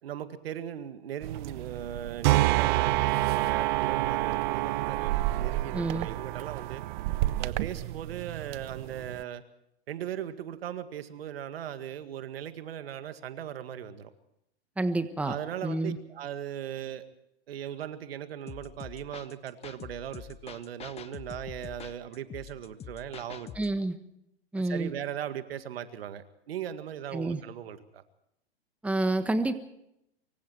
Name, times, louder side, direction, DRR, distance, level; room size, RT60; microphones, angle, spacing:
voice 1, 0.0-6.8 7.4-9.4 9.9-14.1 15.2-17.1 17.5-23.5 24.6-28.0, right 10 dB, 65° right, 11 dB, 2.0 m, -38 dB
sound 1, 1.2-9.2, right 17 dB, 45° right, 1.0 m, -28 dB
voice 2, 5.7-6.1 14.8-15.4 15.6-16.0 23.5-24.0 24.5-24.9 27.1-27.4 28.8-29.5, right 2 dB, 5° right, 11 dB, 1.3 m, -28 dB
sound 2, 18.5-23.8, left 9 dB, 20° left, 1.0 m, -46 dB
24.5 x 24.0 x 4.6 m, 0.80 s
hypercardioid pair, 110°, 32 cm